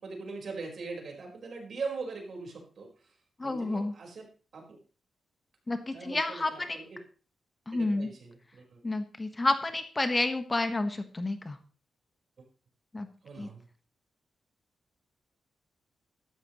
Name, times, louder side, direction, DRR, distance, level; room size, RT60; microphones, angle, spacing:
voice 1, 0.0-3.1 3.4-4.8 5.9-7.0 7.7-8.8 13.2-13.7, right 4 dB, 60° right, 1 dB, 4.8 m, -41 dB
voice 2, 3.4-3.9 5.7-6.8 7.7-8.1 8.8-11.6 12.9-13.1 13.4-13.5, left 2 dB, 25° left, 8 dB, 1.4 m, -30 dB
13.0 x 12.5 x 3.2 m, 0.37 s
cardioid pair, 85°, 0 cm